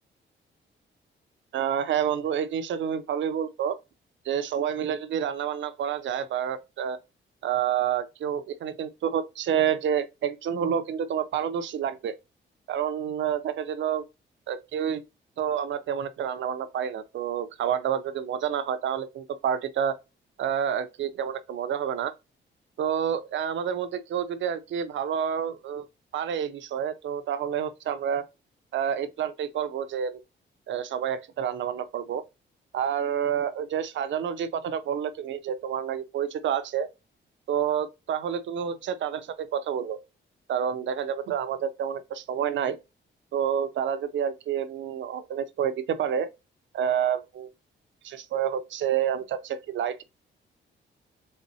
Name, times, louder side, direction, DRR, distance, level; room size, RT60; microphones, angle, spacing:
voice 1, 1.5-3.8 4.3-7.0 7.4-12.1 12.7-14.0 14.5-15.0 15.4-20.0 20.4-22.1 22.8-25.9 26.1-28.2 28.7-30.2 30.7-32.2 32.7-36.9 37.5-40.0 40.5-42.8 43.3-46.3 46.7-47.5 48.0-50.0, right 8 dB, 70° right, 0.5 m, -29 dB
4.2 x 3.4 x 2.7 m
wide cardioid pair, 145°, 20 cm